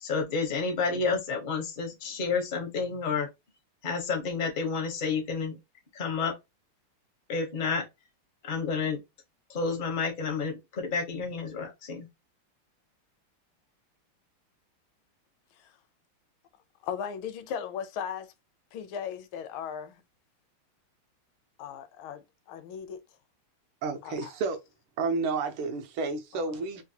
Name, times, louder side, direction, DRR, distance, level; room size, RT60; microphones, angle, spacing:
voice 1, 0.0-3.3 3.8-5.6 5.9-6.3 7.3-7.8 8.4-9.0 9.5-12.1, left 5 dB, 55° left, 0.5 m, -30 dB
voice 2, 16.8-18.3 18.7-20.0 21.6-23.0 24.0-24.3 26.3-26.4, left 8 dB, 75° left, 1.4 m, -37 dB
voice 3, 23.8-24.6 25.0-26.8, right 4 dB, 75° right, 1.5 m, -31 dB
3.9 x 2.2 x 2.7 m
omnidirectional pair, 2.4 m